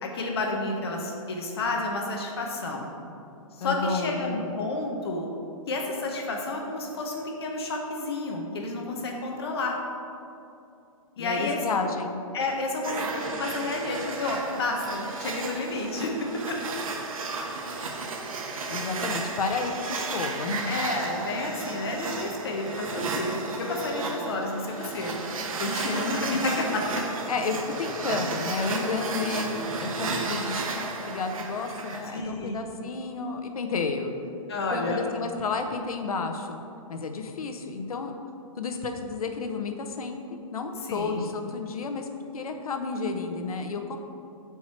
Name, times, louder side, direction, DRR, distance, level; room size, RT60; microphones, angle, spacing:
voice 1, 0.0-2.9 3.6-5.3 5.7-9.8 11.2-11.9 12.3-16.6 20.7-25.2 25.6-27.1 32.1-32.6 34.5-35.0 40.8-41.2, left 2 dB, 45° left, 0 dB, 0.9 m, -30 dB
voice 2, 3.6-4.5 11.2-12.2 18.7-20.7 27.3-34.1 34.7-36.6 36.9-38.1 38.6-42.1 42.3-44.0, left 4 dB, 90° left, 5 dB, 0.8 m, -31 dB
sound 1, 12.8-32.2, right 3 dB, 75° right, 0.9 m, -33 dB
7.1 x 4.7 x 4.3 m, 2.7 s
hypercardioid pair, 170°, 18 cm